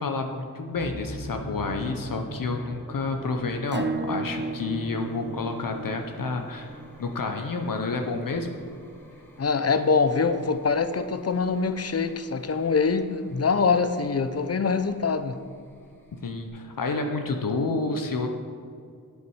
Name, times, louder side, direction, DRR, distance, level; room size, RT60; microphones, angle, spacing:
voice 1, 0.0-6.7 7.0-8.6 16.2-18.3, left 3 dB, 65° left, 4 dB, 0.9 m, -29 dB
sound 1, 0.7-16.5, equal, 5° left, 1.7 m, -44 dB
Acoustic guitar / Strum, 3.7-9.0, right 3 dB, 30° right, 0.6 m, -36 dB
voice 2, 9.4-15.4, left 5 dB, 45° left, 11 dB, 0.6 m, -24 dB
8.2 x 8.1 x 4.8 m, 2.3 s
cardioid pair, 60°, 36 cm